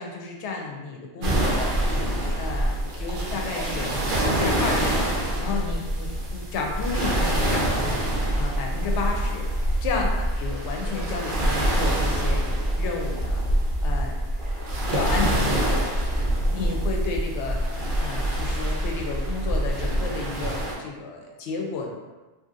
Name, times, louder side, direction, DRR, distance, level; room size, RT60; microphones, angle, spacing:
voice 1, 0.0-1.7 2.4-9.5 9.8-12.5 12.8-13.4 13.8-14.2 14.9-15.9 16.5-17.7 18.0-21.9, left 4 dB, 90° left, 0 dB, 0.9 m, -32 dB
sound 1, 1.2-20.8, right 1 dB, 60° right, 0.6 m, -25 dB
2.7 x 2.6 x 2.5 m, 1.2 s
omnidirectional pair, 1.1 m